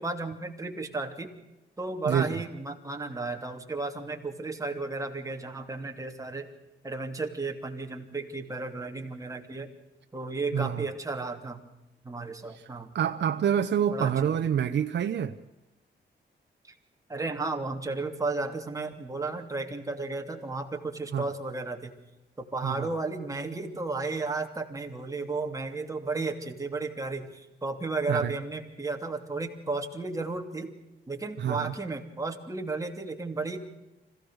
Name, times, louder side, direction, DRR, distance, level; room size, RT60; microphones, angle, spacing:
voice 1, 0.0-1.3 1.8-6.5 6.8-9.7 10.1-11.7 12.0-12.9 13.9-14.4 16.7-16.8 17.1-21.9 22.5-30.7 31.1-33.6, right 3 dB, 15° right, 3 dB, 2.9 m, -33 dB
voice 2, 2.1-2.4 10.5-10.9 12.5-12.7 12.9-15.3 21.1-21.3 22.6-22.9 28.1-28.3 31.4-31.7, right 8 dB, 70° right, 6 dB, 1.0 m, -27 dB
26.0 x 16.5 x 6.5 m, 0.98 s
cardioid pair, 110°, 19 cm